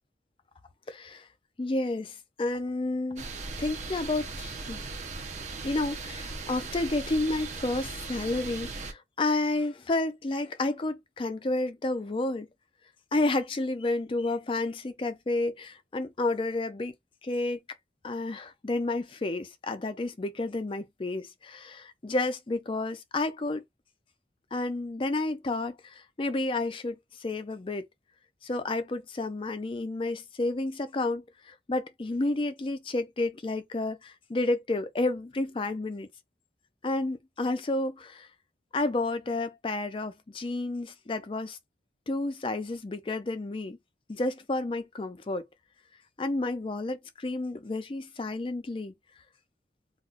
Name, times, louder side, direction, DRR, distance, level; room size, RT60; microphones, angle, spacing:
voice 1, 0.9-1.3 1.6-3.3 3.6-4.9 5.6-12.5 13.1-16.9 17.2-17.6 18.0-23.6 24.5-27.9 28.4-36.1 36.8-38.3 38.7-41.6 42.1-43.8 44.1-45.4 46.2-48.9, left 2 dB, 30° left, 0.4 m, -31 dB
sound 1, 3.2-8.9, right 3 dB, 40° right, 0.6 m, -38 dB
2.4 x 2.2 x 3.8 m
head